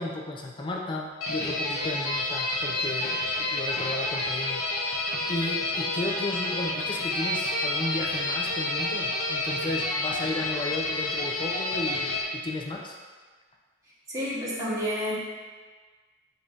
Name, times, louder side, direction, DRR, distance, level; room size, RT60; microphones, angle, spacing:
voice 1, 0.0-13.0, left 2 dB, 25° left, 0 dB, 0.4 m, -34 dB
sound 1, 1.2-12.2, left 2 dB, 75° left, 0.7 m, -29 dB
voice 2, 14.1-15.2, equal, 15° right, -8 dB, 1.1 m, -29 dB
6.7 x 2.6 x 2.4 m, 1.4 s
head